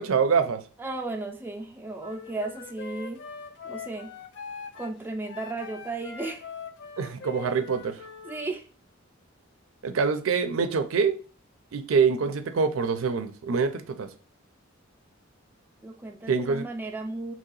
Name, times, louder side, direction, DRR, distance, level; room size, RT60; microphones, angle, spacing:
voice 1, 0.0-0.6 7.0-8.0 9.8-11.2 11.7-14.1 16.3-16.7, right 5 dB, 90° right, 8 dB, 0.5 m, -25 dB
voice 2, 0.8-3.3 3.6-4.1 4.7-6.5 8.2-8.7 15.8-17.3, right 2 dB, 10° right, 3 dB, 0.4 m, -35 dB
Wind instrument woodwind instrument, 2.0-8.5, left 5 dB, 60° left, 0.5 m, -42 dB
3.0 x 2.8 x 3.8 m, 0.38 s
head